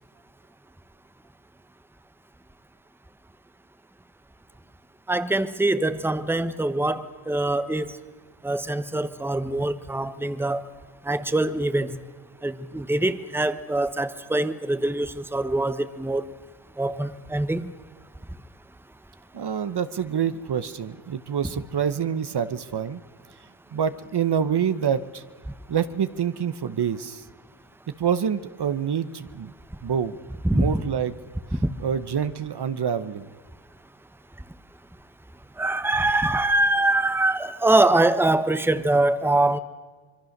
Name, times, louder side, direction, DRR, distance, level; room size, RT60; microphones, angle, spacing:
voice 1, 5.1-7.9 8.4-10.6 11.1-11.9 12.4-16.2 16.8-17.7 30.4-30.7 31.6-31.7 35.6-39.6, right 2 dB, 5° right, 12 dB, 1.1 m, -23 dB
voice 2, 19.3-23.0 23.7-25.2 25.7-27.3 28.0-29.5 29.8-30.2 30.5-31.1 31.5-33.3, right 8 dB, 50° right, 12 dB, 1.1 m, -26 dB
25.5 x 22.5 x 6.6 m, 1.4 s
cardioid pair, 90°, 50 cm